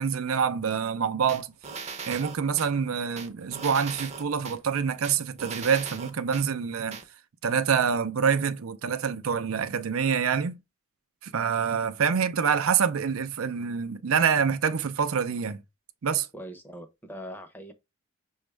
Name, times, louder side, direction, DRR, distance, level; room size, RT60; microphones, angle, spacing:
voice 1, 0.0-7.0 7.4-10.6 11.2-15.6 16.0-16.3, right 6 dB, 85° right, 0.5 m, -26 dB
sound 1, 1.3-2.7 3.2-4.6 5.0-6.5 6.9-7.0, right 5 dB, 35° right, 0.6 m, -38 dB
voice 2, 16.3-17.7, equal, 10° left, 0.6 m, -41 dB
6.1 x 2.3 x 3.2 m
head